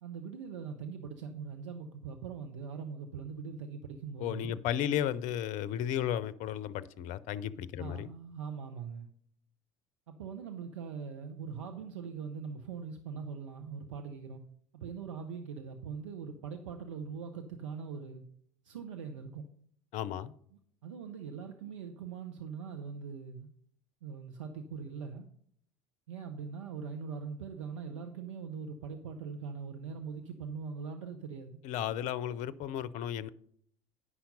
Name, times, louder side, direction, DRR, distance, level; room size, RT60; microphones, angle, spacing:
voice 1, 0.0-4.5 7.8-9.1 10.1-14.4 14.7-18.2 18.6-19.4 20.5-23.5 24.0-25.3 26.1-31.6, right 6 dB, 80° right, 0.7 m, -42 dB
voice 2, 4.2-8.1 19.9-20.3 31.6-33.3, left 10 dB, 55° left, 0.6 m, -34 dB
9.7 x 5.7 x 5.3 m
hypercardioid pair, 70°, 16 cm